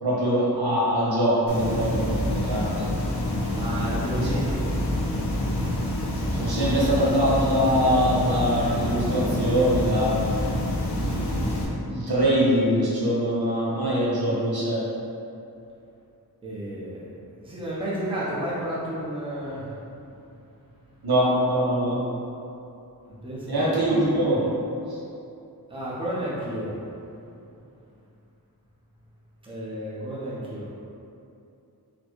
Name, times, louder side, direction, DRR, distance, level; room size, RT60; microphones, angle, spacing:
voice 1, 0.0-2.9 4.2-4.3 6.3-10.2 10.9-11.6 11.8-14.8 21.0-22.0 23.5-24.4, equal, 65° right, -8 dB, 1.0 m, -23 dB
sound 1, 1.5-11.6, left 1 dB, 90° left, 0.6 m, -27 dB
voice 2, 3.5-4.8 16.4-17.0 17.4-20.1 23.2-23.8 25.7-26.7 29.4-30.7, right 1 dB, 15° right, -8 dB, 0.7 m, -32 dB
4.1 x 2.3 x 3.0 m, 2.7 s
wide cardioid pair, 75°, 39 cm